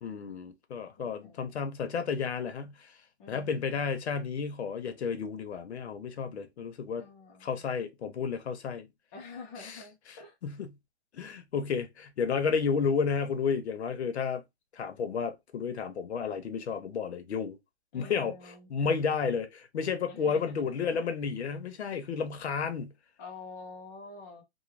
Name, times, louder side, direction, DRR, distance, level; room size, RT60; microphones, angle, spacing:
voice 1, 0.0-2.7 3.3-7.1 7.4-8.9 9.6-9.8 10.1-10.7 11.1-14.4 14.7-17.6 17.9-22.9, left 6 dB, 85° left, 0.9 m, -32 dB
voice 2, 1.0-1.6 3.2-3.9 7.0-7.6 9.1-10.3 17.9-18.7 20.1-20.8 23.2-24.4, left 4 dB, 15° left, 0.4 m, -47 dB
3.1 x 2.2 x 3.2 m
hypercardioid pair, 160°, 32 cm